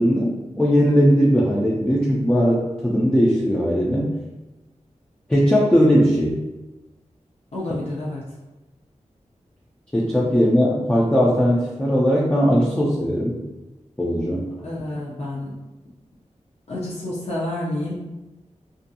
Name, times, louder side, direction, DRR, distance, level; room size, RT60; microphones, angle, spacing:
voice 1, 0.0-4.1 5.3-6.4 9.9-13.4 14.0-14.5, equal, 10° left, -5 dB, 0.4 m, -19 dB
voice 2, 7.5-8.2 14.6-15.5 16.7-17.9, left 1 dB, 55° left, -7 dB, 0.6 m, -29 dB
2.5 x 2.2 x 2.6 m, 1.1 s
wide cardioid pair, 80°, 13 cm